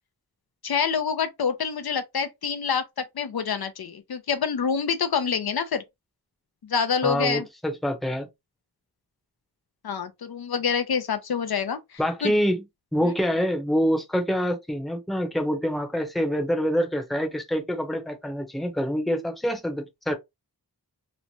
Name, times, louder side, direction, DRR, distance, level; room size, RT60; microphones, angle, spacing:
voice 1, 0.6-5.8 6.6-7.4 9.8-12.3, left 6 dB, 65° left, 0.5 m, -27 dB
voice 2, 7.0-8.3 12.0-12.6 12.9-20.1, equal, ahead, 0.7 m, -26 dB
3.1 x 2.1 x 2.7 m
wide cardioid pair, 70°, 40 cm